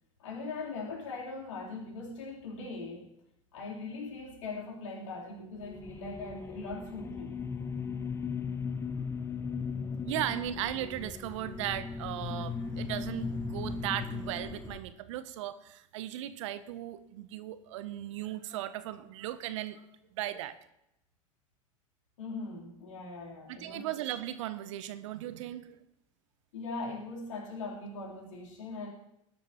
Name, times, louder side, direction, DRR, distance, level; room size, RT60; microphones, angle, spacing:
voice 1, 0.2-3.1 3.5-7.3 22.2-23.9 26.5-28.9, left 3 dB, 70° left, -2 dB, 3.4 m, -40 dB
sound 1, 5.6-14.8, left 5 dB, 15° left, 0.6 m, -37 dB
voice 2, 10.0-19.8 20.1-20.6 23.5-25.8, right 13 dB, 65° right, 13 dB, 0.7 m, -37 dB
19.0 x 12.0 x 2.9 m, 0.82 s
figure-of-eight pair, 80°, 17 cm